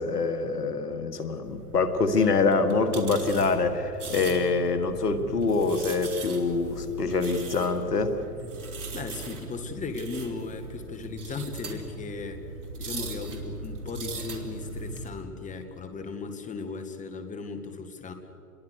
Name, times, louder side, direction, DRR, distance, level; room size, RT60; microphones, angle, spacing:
voice 1, 0.0-8.2, left 4 dB, 90° left, 10 dB, 2.0 m, -25 dB
sound 1, 1.4-15.1, right 3 dB, 70° right, 4.1 m, -39 dB
voice 2, 8.9-12.4 12.8-18.1, left 4 dB, 15° left, 7 dB, 2.0 m, -36 dB
28.0 x 22.0 x 6.6 m, 2.8 s
hypercardioid pair, 115°, 46 cm